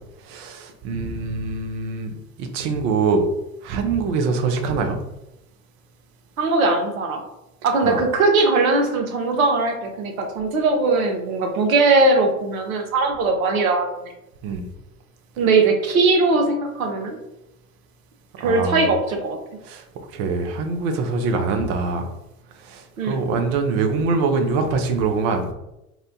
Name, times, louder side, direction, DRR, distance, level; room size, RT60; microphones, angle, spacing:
voice 1, 0.2-3.3 3.6-5.0 7.8-8.0 14.4-14.7 18.4-18.8 19.6-19.8 20.1-22.1 22.6-25.5, right 4 dB, 35° right, 6 dB, 0.4 m, -24 dB
voice 2, 6.4-7.2 7.6-13.9 15.4-17.2 18.4-19.4 23.0-23.2, right 3 dB, 65° right, 3 dB, 0.7 m, -20 dB
2.7 x 2.1 x 2.7 m, 0.88 s
figure-of-eight pair, 85°, 44 cm